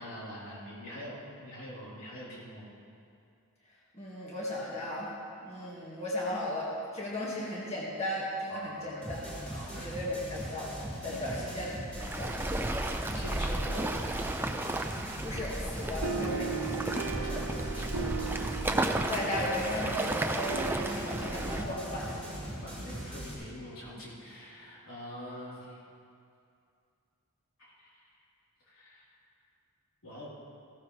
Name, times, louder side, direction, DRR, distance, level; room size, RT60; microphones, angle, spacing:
voice 1, 0.0-2.7 8.5-9.0 9.5-9.9 11.1-11.5 13.1-14.1 16.7-18.0 22.6-25.8 27.6-28.0 28.7-29.1 30.0-30.3, equal, 65° left, -8 dB, 3.9 m, -44 dB
voice 2, 3.9-5.1 5.4-9.4 9.7-10.7 11.0-11.7 12.2-12.4 15.2-16.8 19.1-22.2, left 1 dB, 30° left, -6 dB, 2.0 m, -36 dB
sound 1, 9.0-23.3, equal, 5° left, 3.8 m, -41 dB
Waves surf, 11.9-21.6, right 1 dB, 10° right, 0.5 m, -33 dB
sound 2, 16.0-22.9, right 5 dB, 65° right, 0.8 m, -39 dB
15.5 x 14.5 x 3.4 m, 2.4 s
head